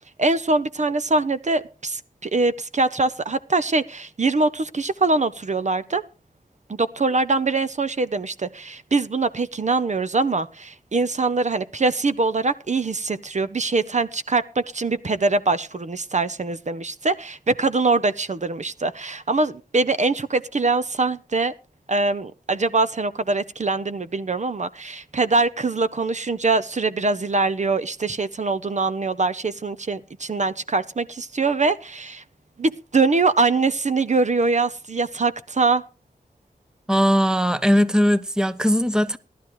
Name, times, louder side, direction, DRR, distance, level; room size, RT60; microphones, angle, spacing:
voice 1, 0.2-6.0 6.8-21.5 21.9-32.2 32.6-35.8, right 3 dB, 50° right, 0.8 m, -23 dB
voice 2, 36.9-39.2, equal, 5° right, 0.8 m, -19 dB
17.5 x 12.0 x 3.1 m
wide cardioid pair, 80°, 15 cm